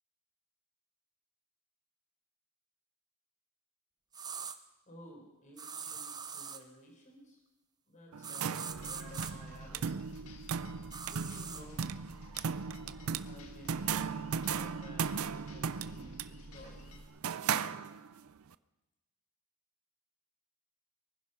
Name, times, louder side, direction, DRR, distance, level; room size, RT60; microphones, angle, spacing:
sound 1, 4.1-4.6 5.6-6.6 8.2-9.3 10.9-11.6, right 6 dB, 20° right, 0.7 m, -42 dB
voice 1, 4.9-7.4 7.9-9.9 11.1-11.9 13.2-17.0, equal, 35° left, 0 dB, 4.5 m, -54 dB
sound 2, 8.1-18.3, right 6 dB, 80° right, 0.5 m, -37 dB
sound 3, 8.7-17.0, left 1 dB, 85° left, 1.9 m, -52 dB
23.5 x 10.5 x 5.6 m, 1.0 s
head